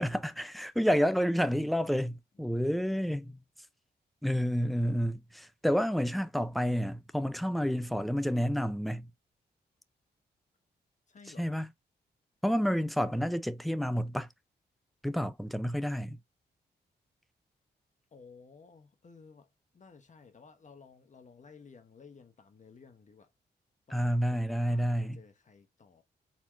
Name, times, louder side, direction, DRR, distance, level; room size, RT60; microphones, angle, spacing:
voice 1, 0.0-3.4 4.2-9.1 11.4-11.7 12.4-14.3 15.0-16.2 23.9-25.2, equal, ahead, 0.6 m, -29 dB
voice 2, 11.1-11.6 18.1-23.3 23.9-26.0, left 5 dB, 45° left, 1.0 m, -55 dB
4.3 x 4.2 x 2.6 m
cardioid pair, 70°, 18 cm